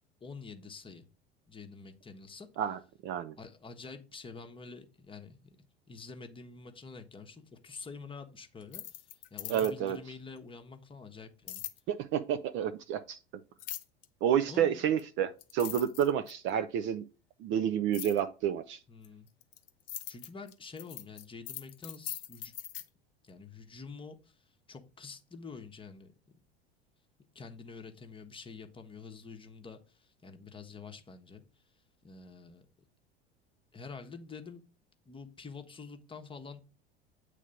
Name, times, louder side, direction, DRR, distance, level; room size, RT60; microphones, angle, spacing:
voice 1, 0.2-1.1 1.5-2.5 3.4-5.6 5.9-11.6 14.5-14.8 18.9-19.3 20.1-22.5 23.2-26.1 27.3-31.6 32.0-32.6 33.7-34.6 35.0-36.6, left 4 dB, 15° left, 1.0 m, -47 dB
voice 2, 2.6-3.3 9.5-10.0 11.9-13.2 14.2-17.0 17.4-18.8, right 9 dB, 40° right, 0.5 m, -30 dB
sound 1, 8.6-10.0 11.5-11.8 13.6-14.1 15.0-15.1 15.4-16.5 17.9-18.2 19.0-22.9, left 12 dB, 60° left, 0.9 m, -41 dB
8.4 x 3.3 x 5.1 m
figure-of-eight pair, 75°, 32 cm